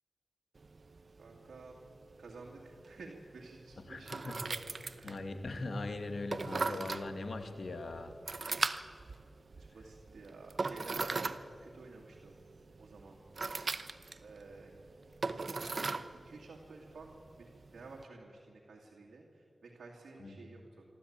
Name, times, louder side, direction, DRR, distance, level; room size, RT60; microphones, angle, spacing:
sound 1, 0.5-18.0, right 3 dB, 60° right, 0.8 m, -41 dB
voice 1, 1.2-1.8 2.2-4.6 4.9-5.2 9.6-12.3 12.8-13.2 14.2-14.7 15.2-15.8 16.2-20.9, right 3 dB, 90° right, -2 dB, 2.3 m, -52 dB
voice 2, 3.9-4.3 5.0-8.1 20.2-20.4, left 2 dB, 70° left, 7 dB, 1.9 m, -40 dB
25.0 x 13.0 x 8.7 m, 2.4 s
cardioid pair, 45°, 0 cm